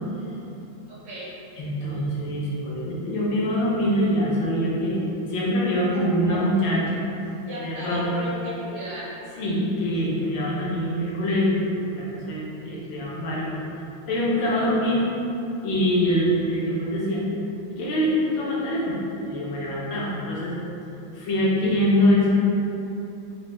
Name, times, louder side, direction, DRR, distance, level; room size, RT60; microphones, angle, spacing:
voice 1, 0.9-1.3 6.0-6.5 7.4-9.1, equal, 55° right, -10 dB, 1.7 m, -35 dB
voice 2, 1.6-7.0 7.6-8.1 9.4-11.6 11.9-13.5 14.1-15.1 15.6-17.2 17.7-20.5 21.1-22.3, equal, 70° left, -6 dB, 1.5 m, -24 dB
5.1 x 2.2 x 3.3 m, 2.9 s
omnidirectional pair, 2.3 m